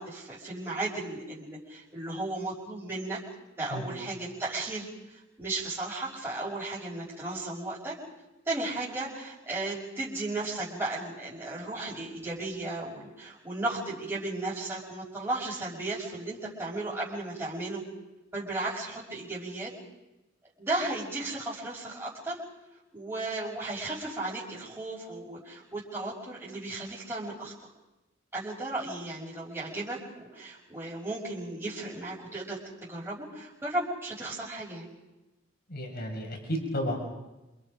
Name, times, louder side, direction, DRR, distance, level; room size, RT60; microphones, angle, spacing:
voice 1, 0.0-3.2 3.6-8.0 8.5-17.8 18.3-19.7 20.6-22.4 22.9-27.5 28.3-34.9, right 2 dB, 15° right, -9 dB, 5.8 m, -35 dB
voice 2, 35.7-37.0, equal, 55° left, 1 dB, 6.1 m, -32 dB
28.0 x 28.0 x 5.2 m, 1.0 s
head